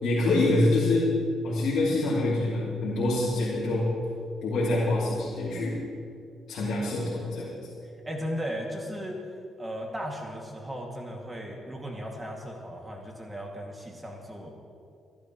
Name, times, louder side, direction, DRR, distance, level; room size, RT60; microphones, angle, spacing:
voice 1, 0.0-1.1 1.4-3.9 4.4-5.8 6.5-7.5, left 2 dB, 65° left, -7 dB, 3.0 m, -25 dB
voice 2, 8.0-9.2 9.6-14.5, equal, 15° right, 0 dB, 2.2 m, -36 dB
27.0 x 12.0 x 3.1 m, 2.5 s
cardioid pair, 90°, 0 cm